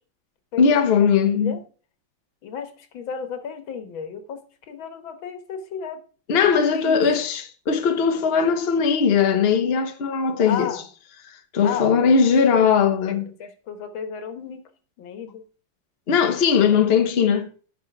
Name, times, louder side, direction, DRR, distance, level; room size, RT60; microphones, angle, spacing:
voice 1, 0.6-1.6 6.3-10.7 11.5-13.2 16.1-17.5, left 6 dB, 40° left, 1.1 m, -19 dB
voice 2, 1.1-1.6 2.4-4.4 4.7-6.0 6.5-7.0 10.4-10.8 11.6-12.2 13.0-14.6 15.0-15.4 16.7-16.9, left 7 dB, 85° left, 2.0 m, -33 dB
9.0 x 6.0 x 5.9 m
omnidirectional pair, 2.1 m